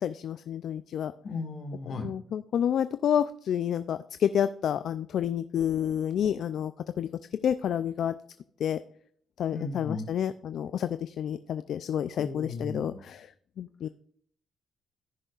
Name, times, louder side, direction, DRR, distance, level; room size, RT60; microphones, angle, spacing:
voice 1, 0.0-1.1 1.9-6.7 7.0-7.1 7.4-8.1 8.6-8.8 9.4-13.3 13.6-13.9, left 9 dB, 65° left, 12 dB, 0.3 m, -29 dB
voice 2, 1.2-2.1 9.5-10.0 12.2-13.0, left 3 dB, 50° left, 4 dB, 1.8 m, -36 dB
14.5 x 6.4 x 2.4 m, 0.63 s
cardioid pair, 90°, 0 cm